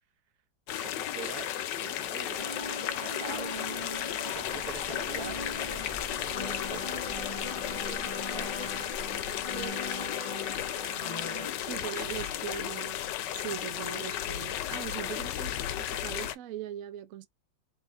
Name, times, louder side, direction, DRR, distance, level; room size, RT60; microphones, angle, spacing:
sound 1, 0.7-16.4, left 11 dB, 75° left, 1.2 m, -34 dB
voice 1, 0.7-5.4 6.1-12.4 13.9-14.0 15.2-15.9, right 7 dB, 60° right, 1.3 m, -47 dB
sound 2, 2.4-11.5, left 2 dB, 25° left, 0.7 m, -40 dB
sound 3, 4.3-9.7, equal, 10° right, 0.8 m, -48 dB
voice 2, 11.7-13.1 13.4-17.3, right 11 dB, 75° right, 0.7 m, -40 dB
4.2 x 3.9 x 2.6 m
omnidirectional pair, 2.0 m